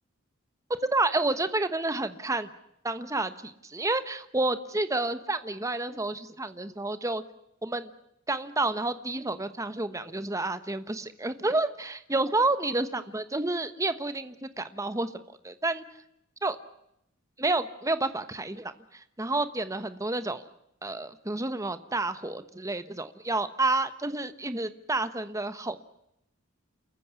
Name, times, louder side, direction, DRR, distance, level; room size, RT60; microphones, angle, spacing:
voice 1, 0.7-2.5 2.8-7.2 7.6-7.9 8.3-15.1 15.4-15.8 16.4-16.6 17.4-20.5 20.8-25.8, right 2 dB, 15° right, 11 dB, 1.2 m, -30 dB
29.0 x 15.0 x 9.5 m, 0.79 s
head